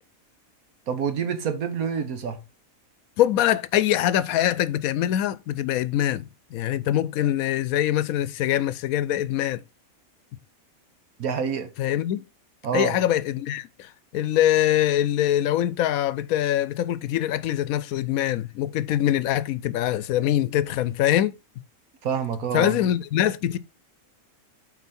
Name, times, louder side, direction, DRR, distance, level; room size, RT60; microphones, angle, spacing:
voice 1, 0.9-2.4 11.2-11.7 12.6-13.0 22.0-22.8, right 6 dB, 80° right, 1.5 m, -27 dB
voice 2, 3.2-9.6 11.8-12.2 12.7-21.4 22.5-23.6, left 12 dB, 80° left, 1.0 m, -23 dB
8.1 x 4.4 x 4.2 m
omnidirectional pair, 1.5 m